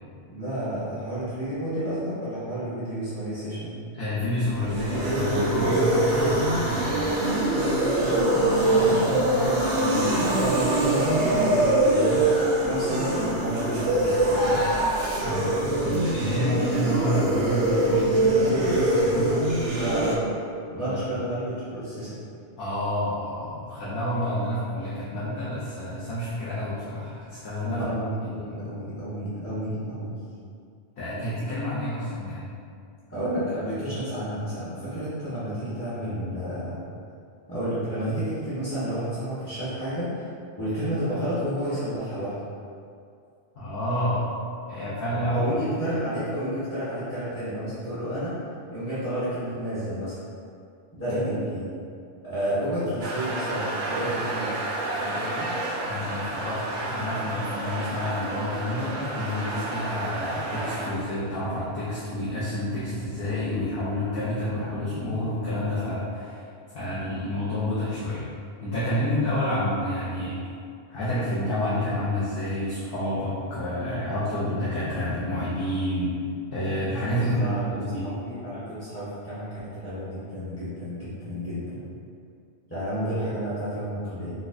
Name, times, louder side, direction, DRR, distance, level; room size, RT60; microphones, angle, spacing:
voice 1, 0.3-3.7 8.0-12.3 12.6-14.6 19.7-20.2 20.7-22.1 27.6-30.1 33.1-36.8 37.5-40.3 40.6-42.4 45.1-48.3 48.7-50.1 50.9-51.6 52.2-54.5 54.9-55.5 77.1-81.8 82.7-84.3, equal, 15° left, -15 dB, 0.9 m, -31 dB
voice 2, 3.9-7.0 15.2-15.6 15.8-19.5 20.7-21.0 22.6-27.8 28.2-28.5 31.0-32.5 43.5-44.3 44.7-45.4 45.7-45.8 51.0-51.2 55.9-66.4 66.7-68.2 68.6-70.4 70.9-76.2 76.5-78.1, left 1 dB, 55° left, -11 dB, 0.9 m, -29 dB
sound 1, 4.5-20.2, right 1 dB, 90° right, 1.0 m, -23 dB
sound 2, 53.0-60.9, right 2 dB, 60° right, 0.5 m, -31 dB
4.1 x 2.4 x 2.5 m, 2.4 s
omnidirectional pair, 1.2 m